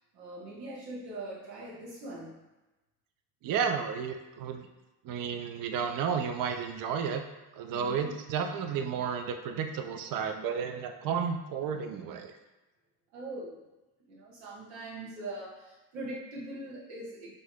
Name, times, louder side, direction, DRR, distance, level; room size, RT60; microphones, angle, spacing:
voice 1, 0.1-2.4 7.7-8.0 13.1-13.6 14.1-17.3, right 2 dB, 90° right, -6 dB, 0.8 m, -42 dB
voice 2, 3.4-4.7 5.0-7.2 7.6-12.3, right 6 dB, 45° right, 5 dB, 0.5 m, -32 dB
2.6 x 2.6 x 3.5 m, 1.1 s
hypercardioid pair, 60°, 50 cm